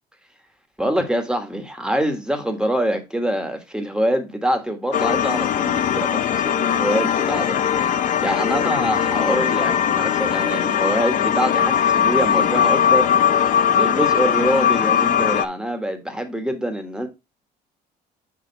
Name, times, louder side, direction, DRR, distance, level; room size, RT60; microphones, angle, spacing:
voice 1, 0.8-17.1, equal, 5° right, 1.6 m, -25 dB
sound 1, 4.9-15.5, left 8 dB, 50° left, 0.6 m, -20 dB
6.8 x 5.0 x 4.0 m
cardioid pair, 110°, 17 cm